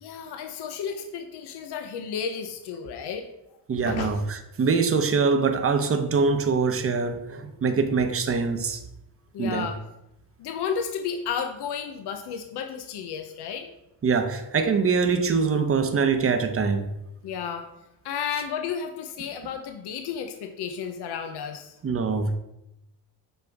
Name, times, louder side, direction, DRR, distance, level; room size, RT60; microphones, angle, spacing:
voice 1, 0.0-3.3 3.8-4.2 9.3-9.8 10.4-13.7 17.2-17.7 18.0-21.8, left 7 dB, 70° left, 0.8 m, -32 dB
voice 2, 3.7-8.8 9.4-9.7 14.0-16.9 21.8-22.4, right 5 dB, 35° right, 0.9 m, -24 dB
8.0 x 5.3 x 3.5 m
cardioid pair, 95°, 41 cm